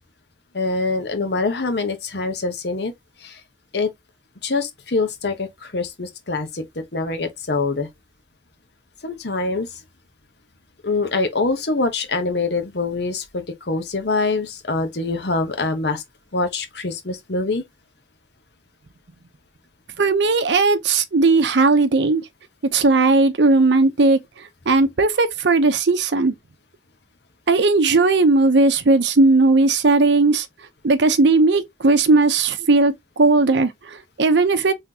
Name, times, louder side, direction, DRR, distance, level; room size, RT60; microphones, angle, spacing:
voice 1, 0.5-2.9 3.2-3.4 3.7-3.9 4.4-6.6 6.9-7.9 9.0-9.7 10.8-16.0 16.3-17.6, left 3 dB, 65° left, 1.0 m, -24 dB
voice 2, 20.0-22.3 22.7-24.2 24.7-26.3 27.5-30.5 30.8-34.7, right 3 dB, 70° right, 0.6 m, -17 dB
3.8 x 3.4 x 2.8 m
head